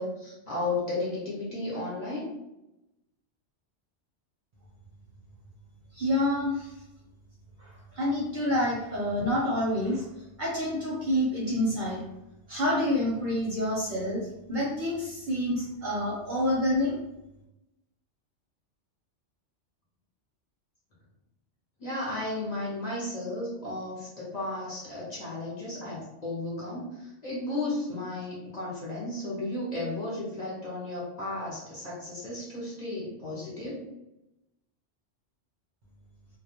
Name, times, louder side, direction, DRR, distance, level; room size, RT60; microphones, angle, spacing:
voice 1, 0.0-2.3 21.8-33.8, left 2 dB, 40° left, -6 dB, 0.7 m, -34 dB
voice 2, 5.9-6.7 7.6-10.1 10.4-12.0 12.5-17.0, left 1 dB, 50° right, -5 dB, 0.7 m, -28 dB
2.2 x 2.2 x 2.8 m, 0.91 s
omnidirectional pair, 1.2 m